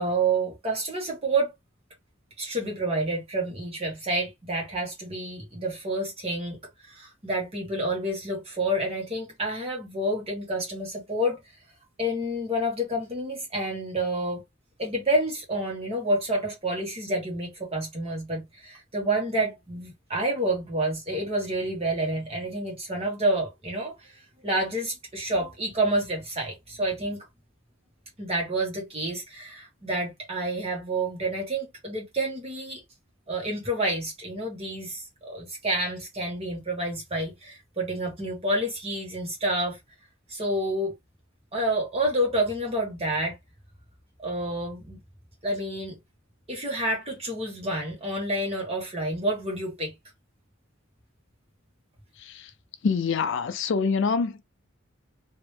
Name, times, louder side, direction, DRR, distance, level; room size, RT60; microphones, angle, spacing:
voice 1, 0.0-1.5 2.4-6.6 6.8-11.4 12.0-14.4 14.8-24.1 24.4-27.3 28.2-32.8 33.3-39.8 40.3-40.9 41.5-43.3 44.2-45.0 45.4-45.9 46.5-49.9, right 1 dB, 30° right, 1.3 m, -29 dB
voice 2, 52.8-54.4, left 5 dB, 65° left, 0.5 m, -25 dB
3.2 x 2.8 x 3.2 m
head